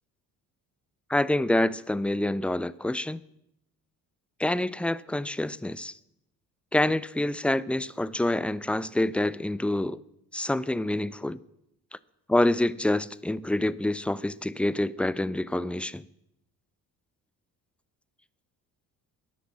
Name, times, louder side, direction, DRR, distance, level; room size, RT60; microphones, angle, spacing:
voice 1, 1.1-3.2 4.4-5.9 6.7-10.0 10.3-11.4 12.3-16.0, left 1 dB, 5° left, 0.5 m, -27 dB
18.0 x 11.0 x 7.5 m
figure-of-eight pair, 50°, 47 cm